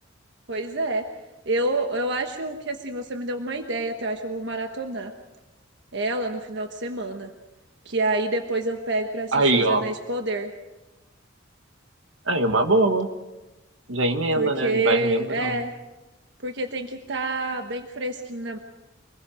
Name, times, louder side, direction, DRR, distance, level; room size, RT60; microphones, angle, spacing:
voice 1, 0.5-1.1 1.4-5.1 5.9-7.3 7.8-10.5 14.4-15.7 16.4-18.6, right 2 dB, 65° right, 5 dB, 1.3 m, -28 dB
voice 2, 9.3-9.8 12.3-13.1 13.9-15.6, right 2 dB, 85° right, 6 dB, 1.8 m, -22 dB
25.0 x 21.0 x 5.1 m, 1.0 s
head